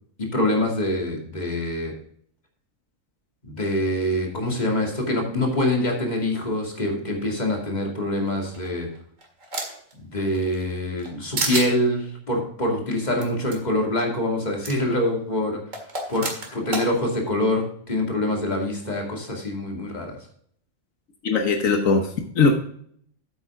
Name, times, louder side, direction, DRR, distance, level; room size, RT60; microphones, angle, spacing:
voice 1, 0.2-1.9 3.4-8.9 10.0-15.6 16.1-20.2, left 1 dB, 30° left, 0 dB, 2.5 m, -25 dB
sound 1, 8.5-9.9 10.4-11.1 11.4-11.7 13.2-13.3 13.5-13.6 14.6-14.8 15.7-16.9, right 2 dB, 75° right, 2.4 m, -29 dB
voice 2, 21.2-22.5, left 4 dB, 80° left, 4 dB, 1.5 m, -20 dB
9.1 x 8.5 x 3.7 m, 0.63 s
omnidirectional pair, 1.4 m